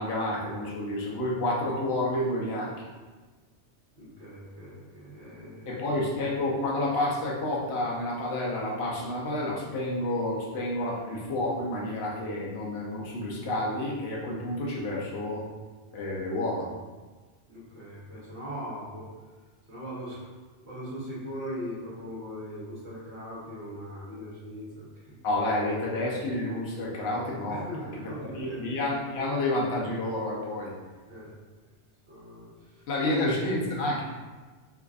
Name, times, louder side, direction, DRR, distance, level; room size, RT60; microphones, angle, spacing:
voice 1, 0.0-2.7 5.7-15.4 15.9-16.7 25.2-27.6 28.2-30.7 32.9-34.0, left 1 dB, 65° left, -3 dB, 1.0 m, -29 dB
voice 2, 3.9-5.8 17.5-19.1 19.7-20.3 20.6-24.9 27.5-28.6 31.1-31.3 32.1-33.2, equal, 60° right, -9 dB, 1.2 m, -40 dB
4.8 x 2.5 x 2.4 m, 1.3 s
omnidirectional pair, 1.2 m